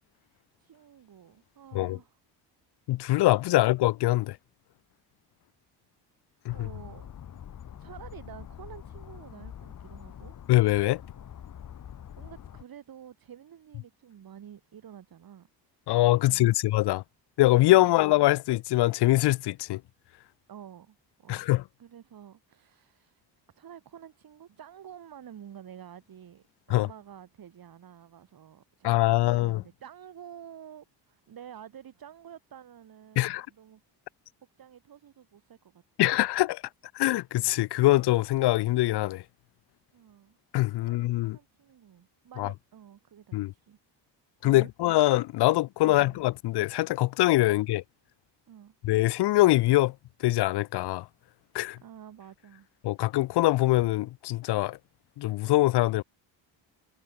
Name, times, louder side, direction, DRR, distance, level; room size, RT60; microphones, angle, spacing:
voice 1, 0.2-2.2 3.5-3.7 6.5-7.1 7.8-10.4 11.8-15.5 16.2-16.6 17.8-18.0 20.5-21.4 21.8-23.2 23.6-33.8 34.6-35.8 39.9-40.4 40.7-43.8 44.4-44.7 45.5-46.2 47.4-47.6 48.5-48.8 51.8-52.7, right 9 dB, 50° right, 2.1 m, -49 dB
voice 2, 2.9-4.4 6.5-6.7 10.5-11.0 15.9-17.0 17.4-19.8 21.3-21.6 26.7-26.9 28.8-29.6 33.2-33.5 36.0-36.6 36.9-39.2 40.5-41.4 42.4-42.5 43.3-43.5 44.4-47.8 48.8-49.9 50.2-51.1 51.5-51.8 52.8-54.8 55.2-56.0, left 17 dB, 65° left, 0.5 m, -23 dB
sound 1, 6.5-12.6, left 9 dB, 45° left, 1.1 m, -45 dB
cardioid pair, 90°, 45 cm